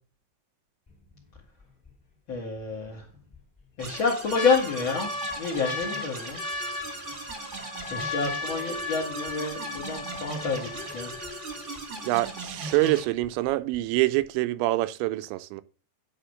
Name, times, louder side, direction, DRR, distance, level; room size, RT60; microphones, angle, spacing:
sound 1, 0.9-1.4 1.8-1.9 2.9-3.4 3.8-11.8 12.5-12.6 12.8-13.3 13.7-13.8, left 3 dB, 15° left, 1.5 m, -36 dB
voice 1, 2.3-3.0 3.8-5.1 5.4-6.4 7.2-7.5 7.9-11.1, left 4 dB, 75° left, 1.1 m, -28 dB
sound 2, 3.8-13.0, right 2 dB, 40° right, 1.0 m, -39 dB
voice 2, 12.0-15.6, right 18 dB, 90° right, 2.9 m, -25 dB
10.0 x 5.1 x 6.4 m
omnidirectional pair, 5.1 m